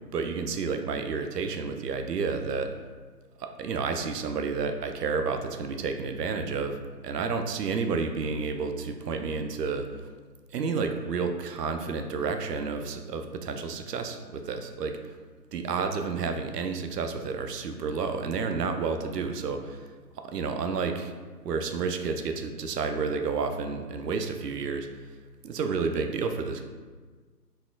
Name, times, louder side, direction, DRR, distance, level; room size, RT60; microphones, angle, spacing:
voice 1, 0.1-2.7 3.4-6.8 7.0-9.9 10.5-15.0 15.5-19.9 20.2-21.1 21.4-24.9 25.4-26.6, right 5 dB, 75° right, 6 dB, 0.5 m, -30 dB
4.1 x 2.4 x 2.2 m, 1.4 s
figure-of-eight pair, 155°, 50 cm